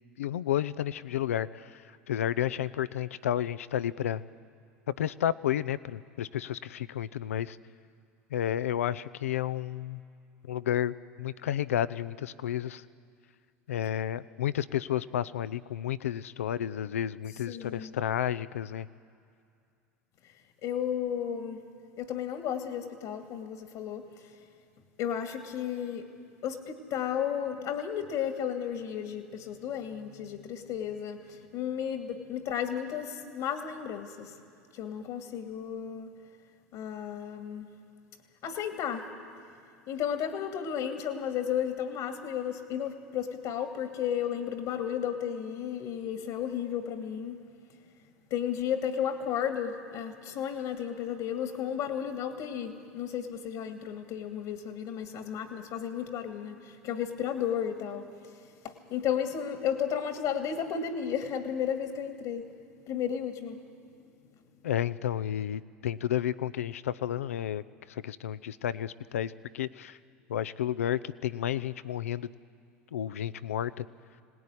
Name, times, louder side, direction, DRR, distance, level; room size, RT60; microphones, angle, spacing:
voice 1, 0.2-4.2 4.9-7.6 8.3-10.0 10.4-12.8 13.7-18.9 64.6-70.0 70.3-72.3 72.9-73.9, left 11 dB, 80° left, 17 dB, 0.6 m, -31 dB
voice 2, 17.5-17.9 20.6-21.6 22.0-24.0 25.0-26.1 26.4-34.3 34.7-36.1 36.7-37.7 38.4-39.1 39.9-47.4 48.3-58.1 58.6-62.5 62.8-63.6, left 8 dB, 60° left, 6 dB, 2.1 m, -33 dB
25.0 x 18.5 x 9.8 m, 2.4 s
hypercardioid pair, 80°, 7 cm